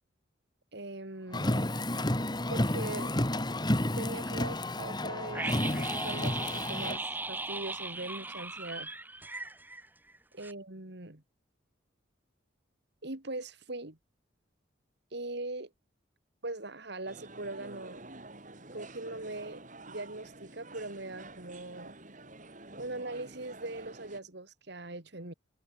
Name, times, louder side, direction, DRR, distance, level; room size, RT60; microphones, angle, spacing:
voice 1, 0.7-1.7 2.5-3.1 3.8-8.9 10.3-11.2 13.0-14.0 15.1-15.7 16.4-18.0 18.7-21.9 22.7-25.3, right 2 dB, 60° right, 2.4 m, -41 dB
Car, 1.3-7.0, left 1 dB, 20° left, 2.3 m, -31 dB
sound 1, 5.3-10.2 10.4-10.5, right 2 dB, 10° right, 0.8 m, -38 dB
sound 2, 17.1-24.2, right 2 dB, 40° right, 5.2 m, -49 dB
head